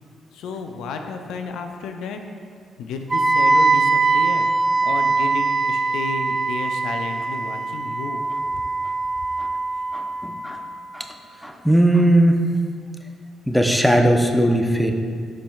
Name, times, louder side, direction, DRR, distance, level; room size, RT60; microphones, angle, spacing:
voice 1, 0.3-2.2 2.8-4.5 4.8-8.2 8.5-8.6, left 4 dB, 75° left, 5 dB, 0.5 m, -32 dB
Wind instrument woodwind instrument, 3.1-11.0, right 3 dB, 30° right, 0.4 m, -22 dB
voice 2, 9.9-10.6 10.9-11.1 11.4-12.4 13.5-14.9, right 1 dB, ahead, 4 dB, 0.8 m, -18 dB
12.0 x 4.4 x 2.4 m, 2.1 s
hypercardioid pair, 50°, 0 cm